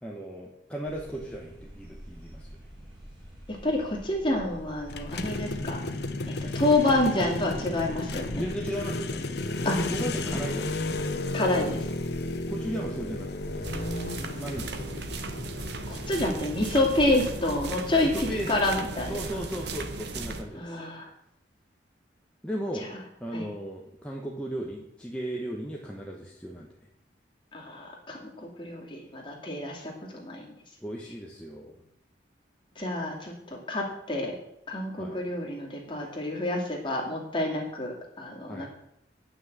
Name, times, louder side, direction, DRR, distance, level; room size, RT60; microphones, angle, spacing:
voice 1, 0.0-2.5 8.3-9.4 9.9-11.0 12.5-13.7 14.4-15.0 18.0-18.6 19.1-20.8 22.4-22.8 23.2-26.7 30.8-31.7 35.0-35.2 38.5-38.7, right 1 dB, 5° left, -2 dB, 1.1 m, -36 dB
sound 1, 0.8-14.2, equal, 25° right, 4.6 m, -45 dB
voice 2, 3.6-5.8 6.3-8.4 9.6-9.8 10.3-10.4 11.3-11.8 15.9-19.1 20.5-21.1 23.3-23.4 27.5-28.3 28.6-30.5 32.8-33.3 33.7-34.3 34.7-38.7, left 2 dB, 25° left, -1 dB, 2.6 m, -28 dB
sound 2, 4.9-19.2, left 2 dB, 55° left, 0.8 m, -34 dB
sound 3, 13.6-20.4, right 2 dB, 60° right, 1.2 m, -36 dB
9.7 x 6.1 x 8.1 m, 0.81 s
head